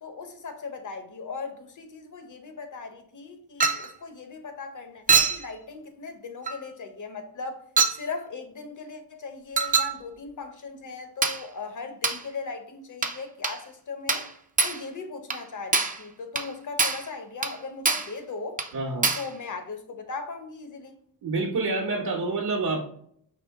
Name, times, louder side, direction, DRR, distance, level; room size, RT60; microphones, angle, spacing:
voice 1, 0.0-7.6 7.9-14.3 14.6-18.6 19.2-21.0, left 4 dB, 50° left, 0.8 m, -38 dB
Chink clink, 3.6-3.9 5.1-5.5 6.5-6.6 7.8-8.0 9.6-10.0 11.2-11.4 12.0-12.2 13.0-13.2 13.4-13.6 14.1-14.3 14.6-14.8 15.3-15.4 15.7-16.0 16.4-16.5 16.8-17.1 17.4-17.6 17.9-18.1 18.6-18.7 19.0-19.3, right 4 dB, 20° right, 0.5 m, -24 dB
voice 2, 18.7-19.1 21.2-22.8, right 3 dB, 75° right, 1.1 m, -27 dB
5.0 x 2.9 x 3.5 m
wide cardioid pair, 125°, 40 cm